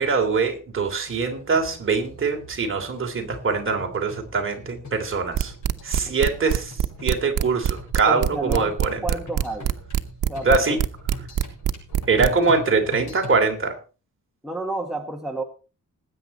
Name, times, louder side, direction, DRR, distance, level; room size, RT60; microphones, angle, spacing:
voice 1, 0.0-5.5 5.8-6.7 7.0-9.0 10.5-10.8 12.1-13.7, right 4 dB, 40° right, 4 dB, 3.0 m, -23 dB
sound 1, 1.1-13.5, left 2 dB, 65° left, 7.7 m, -42 dB
sound 2, 5.3-12.3, right 9 dB, 80° right, 1.0 m, -22 dB
voice 2, 8.0-9.7 10.3-10.8 14.4-15.4, right 2 dB, ahead, 2 dB, 1.6 m, -31 dB
19.5 x 9.1 x 4.2 m, 0.34 s
wide cardioid pair, 160°, 32 cm